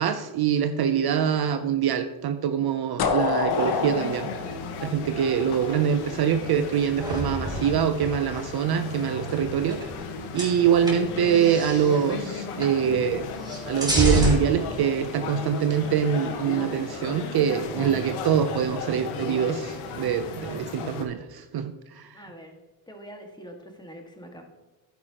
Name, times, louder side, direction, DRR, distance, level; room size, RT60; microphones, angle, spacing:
voice 1, 0.0-4.3 4.8-9.8 10.3-13.3 13.7-22.1, right 8 dB, 50° right, 9 dB, 0.7 m, -24 dB
sound 1, 3.0-5.8, left 5 dB, 50° left, 1.3 m, -27 dB
sound 2, 3.5-21.0, left 4 dB, 85° left, 1.5 m, -35 dB
sound 3, 7.0-8.5 9.2-10.1 10.3-12.0 12.6-12.8 13.0-14.4, left 1 dB, 10° right, 2.7 m, -29 dB
voice 2, 22.1-22.5 22.9-24.4, equal, 10° left, 3 dB, 1.8 m, -44 dB
10.5 x 9.5 x 3.0 m, 1.1 s
cardioid pair, 90°, 49 cm